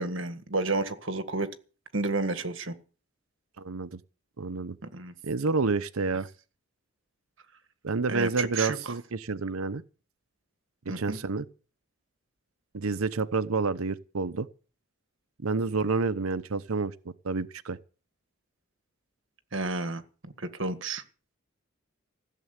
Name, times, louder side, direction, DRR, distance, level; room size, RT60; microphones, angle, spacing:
voice 1, 0.0-1.5 1.9-2.7 4.9-5.1 8.1-8.8 10.9-11.2 19.5-20.0 20.4-21.0, right 3 dB, 65° right, 1.8 m, -31 dB
voice 2, 3.6-4.0 4.4-4.8 5.2-6.3 7.8-9.8 11.0-11.5 12.7-14.5 15.4-16.9 17.2-17.8, right 4 dB, 90° right, 0.8 m, -29 dB
16.0 x 7.6 x 9.6 m
head